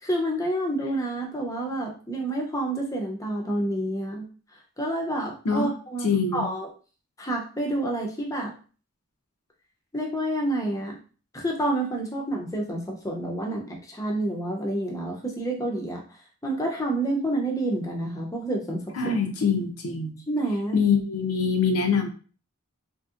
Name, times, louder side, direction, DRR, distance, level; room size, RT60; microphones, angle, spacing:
voice 1, 0.0-4.2 4.8-6.7 7.2-8.5 9.9-11.0 11.3-16.0 16.4-19.2 20.3-20.8, right 1 dB, 15° left, -1 dB, 0.5 m, -28 dB
voice 2, 6.0-6.4 18.9-20.2 20.7-22.1, left 5 dB, 90° left, 3 dB, 0.7 m, -24 dB
3.2 x 2.7 x 2.4 m, 0.38 s
head